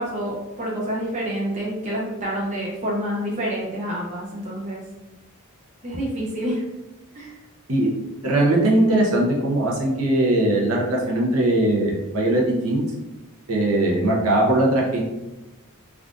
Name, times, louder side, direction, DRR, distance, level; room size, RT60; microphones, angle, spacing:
voice 1, 0.0-4.8 5.8-6.6 7.1-7.4, equal, 30° right, -4 dB, 0.5 m, -28 dB
voice 2, 8.2-12.8 13.5-15.0, right 1 dB, 70° right, -2 dB, 0.7 m, -20 dB
3.5 x 2.4 x 2.5 m, 1.0 s
head